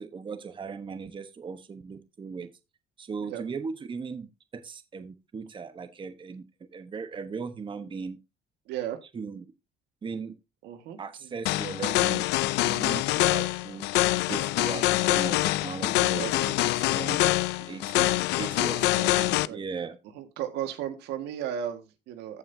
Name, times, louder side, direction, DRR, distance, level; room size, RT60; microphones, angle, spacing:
voice 1, 0.0-2.5 3.0-6.4 6.7-8.2 9.1-9.5 10.0-10.3 11.0-12.3 12.6-13.9 14.3-17.2 17.6-19.0 19.5-20.0, right 5 dB, 30° right, 9 dB, 1.1 m, -38 dB
voice 2, 8.7-9.0 10.6-11.3 11.8-12.0 15.9-16.6 18.8-19.6 20.2-22.4, right 10 dB, 85° right, 7 dB, 1.7 m, -36 dB
sound 1, 11.5-19.5, left 17 dB, 90° left, 0.5 m, -25 dB
15.0 x 5.7 x 2.7 m, 0.26 s
cardioid pair, 110°, 17 cm